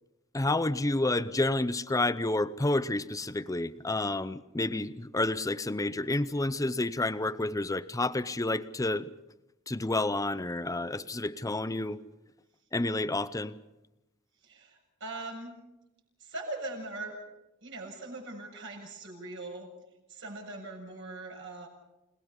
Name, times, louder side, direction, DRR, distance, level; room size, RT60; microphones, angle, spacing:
voice 1, 0.3-9.1 9.7-12.0 12.7-13.6, left 2 dB, 15° left, 0.7 m, -30 dB
voice 2, 14.4-15.5 16.2-17.1 17.6-19.7 20.1-21.7, right 2 dB, 65° right, 7.2 m, -41 dB
29.5 x 19.0 x 5.5 m
head